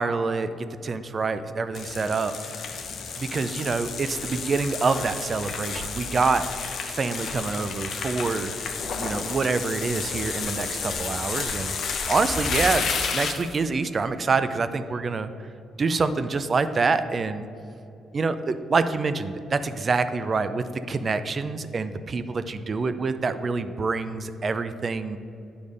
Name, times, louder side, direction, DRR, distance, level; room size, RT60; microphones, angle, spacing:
voice 1, 0.0-2.3 3.2-8.6 9.0-15.3 15.8-17.5 18.1-25.2, right 4 dB, 40° right, 11 dB, 0.4 m, -26 dB
sound 1, 1.7-13.6, left 5 dB, 60° left, 0.8 m, -31 dB
9.3 x 3.4 x 5.3 m, 2.7 s
cardioid pair, 90°, 0 cm